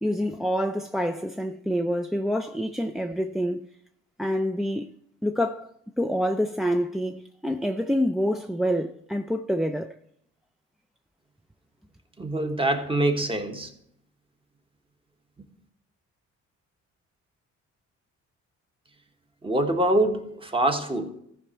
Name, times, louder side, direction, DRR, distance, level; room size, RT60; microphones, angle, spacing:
voice 1, 0.0-3.6 4.2-4.9 5.2-5.7 6.0-9.9, equal, ahead, 0.4 m, -27 dB
voice 2, 12.2-13.7 19.4-21.1, right 1 dB, 15° right, 1.2 m, -24 dB
14.0 x 5.0 x 4.4 m
cardioid pair, 90°, 30 cm